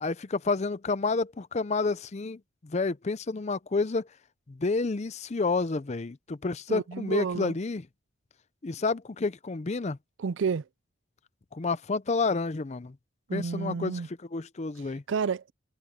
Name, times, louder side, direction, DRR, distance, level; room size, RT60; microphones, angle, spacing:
voice 1, 0.0-4.1 4.5-7.8 8.6-10.0 11.5-13.0 13.3-14.0 14.3-15.0, left 3 dB, 35° left, 0.5 m, -29 dB
voice 2, 6.7-7.5 10.2-10.7 13.3-14.1 15.1-15.5, right 5 dB, 65° right, 0.4 m, -30 dB
head